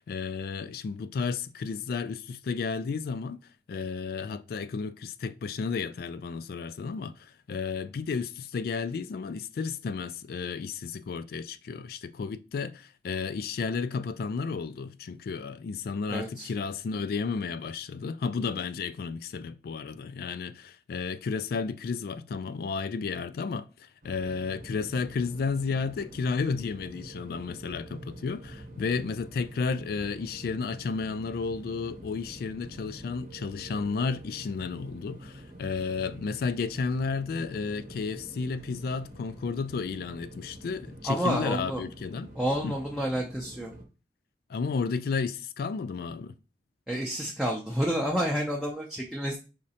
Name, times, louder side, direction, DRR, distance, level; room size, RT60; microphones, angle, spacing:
voice 1, 0.0-3.4 3.7-42.3 42.6-42.8 44.5-46.3, left 5 dB, 55° left, 0.3 m, -32 dB
voice 2, 16.1-16.5 41.0-41.9 42.3-43.7 46.9-49.4, equal, ahead, 0.5 m, -29 dB
sound 1, 24.0-43.8, right 1 dB, 50° right, 0.8 m, -46 dB
5.0 x 3.2 x 2.8 m
head